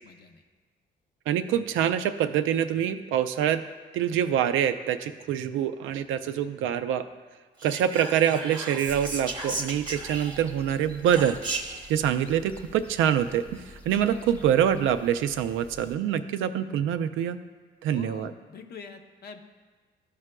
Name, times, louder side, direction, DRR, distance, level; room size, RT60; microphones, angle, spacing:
voice 1, 0.0-0.4 17.9-19.4, left 5 dB, 55° left, 6 dB, 0.7 m, -45 dB
voice 2, 1.3-3.6 3.9-7.1 7.6-11.4 11.9-17.4 17.8-18.3, right 9 dB, 85° right, 10 dB, 0.4 m, -25 dB
Whispering, 7.6-10.6 11.1-11.9, right 2 dB, 25° right, 0.9 m, -35 dB
sound 1, 8.9-16.0, equal, 5° left, 0.5 m, -49 dB
12.5 x 4.8 x 2.2 m, 1.4 s
cardioid pair, 90°, 20 cm